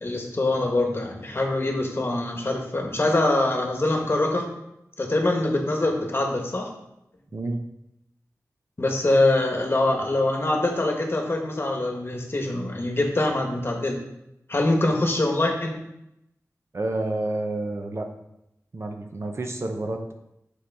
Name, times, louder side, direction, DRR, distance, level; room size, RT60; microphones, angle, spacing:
voice 1, 0.0-4.5 5.0-6.7 8.8-14.0 14.5-15.8, left 2 dB, 40° left, 2 dB, 1.2 m, -24 dB
voice 2, 16.7-18.1 18.7-20.1, right 2 dB, 50° right, 4 dB, 0.7 m, -29 dB
6.5 x 4.6 x 3.5 m, 0.83 s
wide cardioid pair, 70°, 6 cm